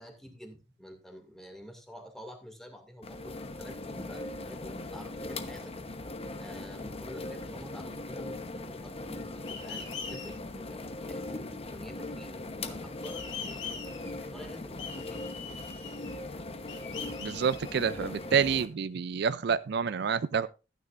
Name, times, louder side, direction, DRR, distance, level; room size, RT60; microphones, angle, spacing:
voice 1, 0.0-5.8 6.4-13.9 14.3-15.3, equal, ahead, 2.3 m, -49 dB
sound 1, 3.0-18.7, left 2 dB, 35° left, 1.0 m, -40 dB
sound 2, 9.5-10.3 13.0-14.3 14.8-16.3 16.7-18.3, left 6 dB, 90° left, 2.8 m, -42 dB
voice 2, 17.2-20.5, right 6 dB, 65° right, 0.4 m, -28 dB
14.5 x 9.5 x 2.5 m
head